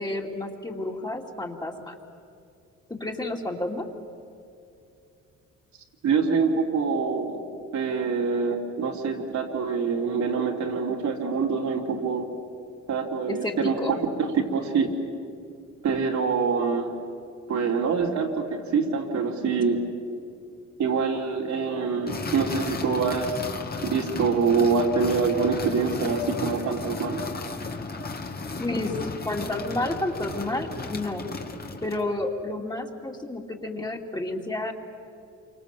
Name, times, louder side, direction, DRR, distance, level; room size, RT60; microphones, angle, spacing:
voice 1, 0.0-1.9 2.9-3.9 13.3-14.0 28.6-29.0 29.2-31.3 31.8-34.7, left 2 dB, 15° left, 1 dB, 2.8 m, -30 dB
voice 2, 6.0-7.4 7.7-12.3 12.9-14.9 15.8-16.9 17.5-19.8 20.8-23.4 23.8-27.2, right 5 dB, 70° right, 0 dB, 3.5 m, -25 dB
sound 1, 22.1-32.1, left 3 dB, 30° left, 2.2 m, -35 dB
28.0 x 25.0 x 7.6 m, 2.5 s
cardioid pair, 90°, 30 cm